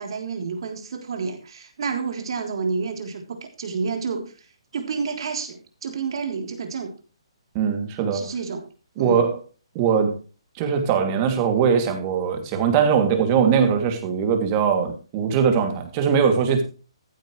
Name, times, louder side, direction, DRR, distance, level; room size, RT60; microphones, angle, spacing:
voice 1, 0.0-4.5 4.7-6.9 8.1-8.7 9.0-9.2, right 5 dB, 60° right, 3.5 m, -29 dB
voice 2, 7.5-8.2 9.0-9.3 9.7-10.2 10.6-16.6, right 7 dB, 30° right, 2.7 m, -21 dB
14.5 x 8.9 x 3.3 m
hypercardioid pair, 150°, 3 cm